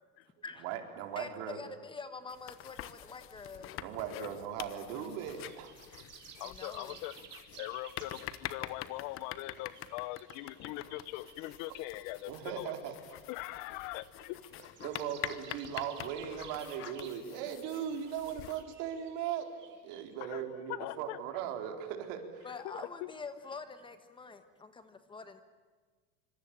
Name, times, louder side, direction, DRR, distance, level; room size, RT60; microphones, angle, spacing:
voice 1, 0.6-1.6 3.8-5.7 6.6-6.7 12.3-12.9 14.8-19.5 19.8-22.5, right 9 dB, 60° right, 5 dB, 4.2 m, -38 dB
voice 2, 1.1-3.8 6.4-7.0 22.4-25.4, left 4 dB, 15° left, 10 dB, 1.2 m, -46 dB
sound 1, 2.3-18.6, left 13 dB, 40° left, 1.2 m, -46 dB
sound 2, 5.0-20.1, right 8 dB, 35° right, 3.8 m, -56 dB
voice 3, 6.4-7.2 7.6-12.7 13.3-14.4 20.2-20.4 20.7-21.2 22.5-23.1, left 18 dB, 60° left, 18 dB, 1.0 m, -41 dB
26.0 x 25.5 x 9.0 m, 1.4 s
cardioid pair, 170°, 33 cm